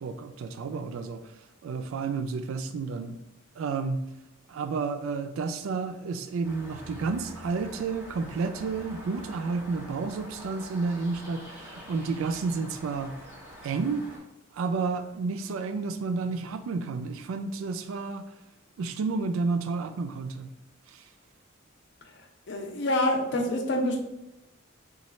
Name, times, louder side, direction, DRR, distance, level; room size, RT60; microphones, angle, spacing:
voice 1, 0.0-1.2 1.6-3.2 3.6-4.0 4.5-13.1 13.6-14.0 14.5-18.2 18.8-20.5, right 4 dB, 85° right, 8 dB, 0.3 m, -31 dB
sound 1, 6.4-14.2, equal, 10° right, 0.7 m, -46 dB
voice 2, 22.5-24.0, left 1 dB, 55° left, 3 dB, 0.5 m, -26 dB
3.1 x 2.3 x 4.1 m, 0.91 s
head